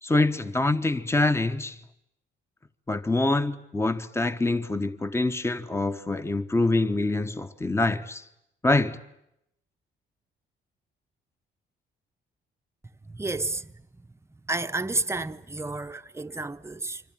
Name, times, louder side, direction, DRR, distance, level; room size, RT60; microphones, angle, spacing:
voice 1, 0.0-1.8 2.9-8.2 8.6-9.0, left 2 dB, 15° left, 1.2 m, -25 dB
voice 2, 13.1-13.7 14.5-17.0, right 2 dB, 15° right, 1.0 m, -31 dB
26.5 x 25.0 x 9.0 m
cardioid pair, 90°, 20 cm